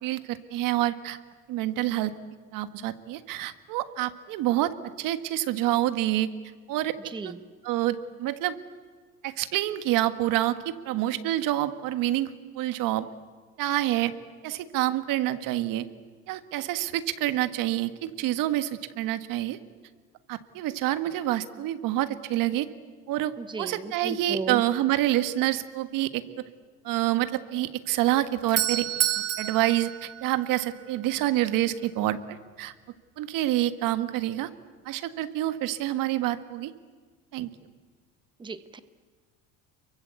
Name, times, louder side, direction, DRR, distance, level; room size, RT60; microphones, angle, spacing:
voice 1, 0.0-1.2 1.5-2.1 2.5-4.7 5.0-6.3 6.7-6.9 7.2-7.3 7.6-8.6 9.2-13.1 13.6-14.1 14.4-15.8 16.3-19.6 20.3-22.7 23.1-26.4 26.8-28.9 29.1-32.7 33.2-34.5 34.8-36.7 37.3-37.5, right 14 dB, 70° right, 11 dB, 1.6 m, -27 dB
voice 2, 7.1-7.4 23.4-24.6 38.4-38.8, right 4 dB, 15° right, 12 dB, 1.0 m, -35 dB
Doorbell, 28.1-31.0, right 11 dB, 45° right, 1.3 m, -29 dB
29.5 x 23.0 x 8.3 m, 1.5 s
cardioid pair, 150°, 34 cm